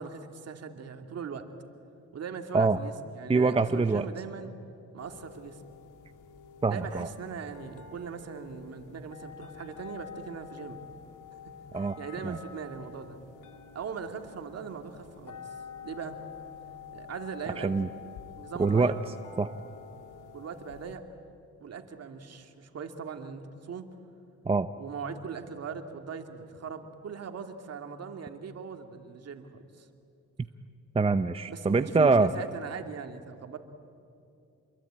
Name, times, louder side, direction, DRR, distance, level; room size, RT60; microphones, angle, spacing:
voice 1, 0.0-1.5 2.1-4.5 4.9-5.6 6.7-10.9 11.7-13.2 13.7-15.6 15.8-16.2 16.9-17.8 18.4-19.0 20.3-21.1 21.6-23.9 24.8-29.9 31.5-33.6, right 6 dB, 55° right, 5 dB, 2.5 m, -40 dB
voice 2, 3.3-4.0 6.6-7.1 11.7-12.0 12.2-12.4 17.6-17.9 18.6-18.9 19.4-19.5 24.5-24.7 30.9-32.3, right 4 dB, 20° right, 10 dB, 0.7 m, -24 dB
sound 1, 5.0-21.0, left 7 dB, 85° left, 2.4 m, -48 dB
28.0 x 22.5 x 8.9 m, 2.6 s
cardioid pair, 90°, 30 cm